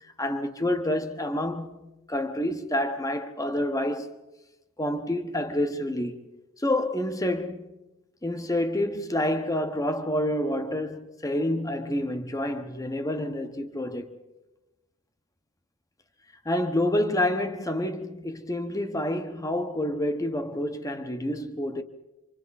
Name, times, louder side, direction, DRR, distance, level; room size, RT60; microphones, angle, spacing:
voice 1, 0.0-4.1 4.8-6.2 6.6-7.7 8.2-14.1 16.4-21.8, left 1 dB, 15° left, 1.1 m, -28 dB
28.5 x 25.5 x 4.2 m
head